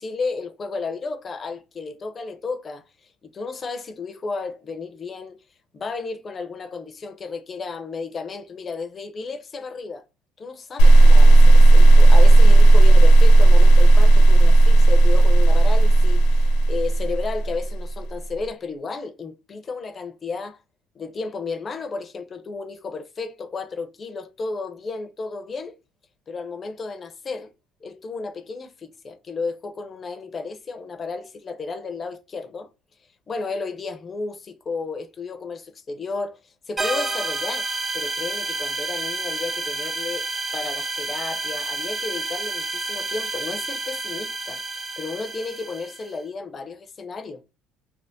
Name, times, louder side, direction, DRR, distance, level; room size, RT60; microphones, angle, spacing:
voice 1, 0.0-5.4 5.7-10.0 10.4-20.6 20.9-25.7 26.3-27.5 27.8-32.7 33.3-40.3 40.5-44.6 45.0-47.4, left 4 dB, 35° left, 0.6 m, -33 dB
sound 1, 10.8-17.9, right 2 dB, 85° left, 0.8 m, -11 dB
sound 2, 36.8-46.1, right 3 dB, 20° right, 0.4 m, -29 dB
3.4 x 2.1 x 2.5 m
supercardioid pair, 85°, 0 cm